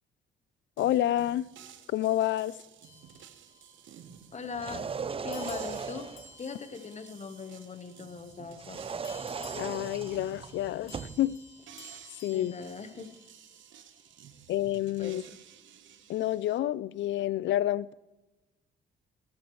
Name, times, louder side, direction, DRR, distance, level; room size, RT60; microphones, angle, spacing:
voice 1, 0.8-1.5 1.9-2.5 9.6-11.4 12.2-12.5 14.5-15.2 16.1-17.9, left 13 dB, 70° left, 0.5 m, -29 dB
sound 1, 0.8-16.6, right 9 dB, 75° right, 1.1 m, -53 dB
sound 2, 2.8-4.0 5.3-8.0 9.0-13.6, left 2 dB, 85° left, 2.8 m, -53 dB
voice 2, 4.3-4.9 5.2-6.1 6.4-9.0 12.3-13.1 15.0-15.4, left 5 dB, 35° left, 1.1 m, -40 dB
sound 3, 4.5-6.4 8.5-11.2, right 5 dB, 30° right, 0.5 m, -38 dB
17.0 x 13.5 x 3.1 m
cardioid pair, 90°, 20 cm